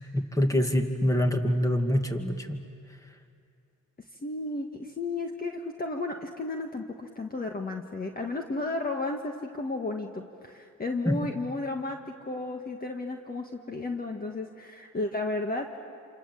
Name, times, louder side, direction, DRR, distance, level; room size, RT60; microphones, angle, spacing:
voice 1, 0.1-2.6 11.1-11.2, left 1 dB, 10° left, 5 dB, 2.3 m, -25 dB
voice 2, 4.2-15.7, left 2 dB, 30° left, 3 dB, 1.6 m, -33 dB
28.0 x 27.5 x 7.6 m, 2.4 s
cardioid pair, 90°, 30 cm